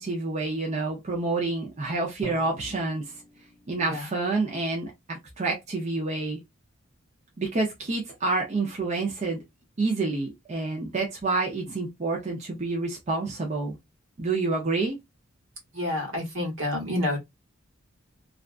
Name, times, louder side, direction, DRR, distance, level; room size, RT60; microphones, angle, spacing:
voice 1, 0.0-3.1 3.7-6.4 7.4-9.4 9.8-13.8 14.2-15.0, right 3 dB, 35° right, 0.5 m, -28 dB
Drum, 2.2-4.1, right 1 dB, 20° left, 0.6 m, -45 dB
voice 2, 15.7-17.2, left 1 dB, 70° right, 1.2 m, -28 dB
2.5 x 2.2 x 2.3 m
head